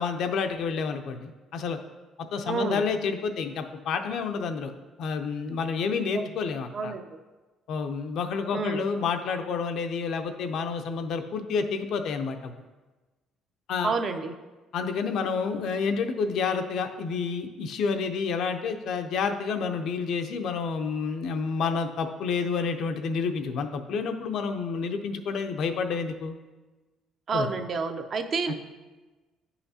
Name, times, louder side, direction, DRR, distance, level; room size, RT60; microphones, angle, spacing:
voice 1, 0.0-1.8 2.3-4.7 5.0-6.9 7.7-12.5 13.7-13.9 14.7-26.4 27.3-27.5 28.5-28.6, left 5 dB, 60° left, 7 dB, 0.5 m, -29 dB
voice 2, 2.5-2.8 6.1-6.3 6.7-7.1 8.5-8.8 13.8-14.3 27.3-28.5, right 4 dB, 35° right, 7 dB, 0.5 m, -29 dB
9.7 x 5.7 x 2.8 m, 1.2 s
cardioid pair, 160°, 0 cm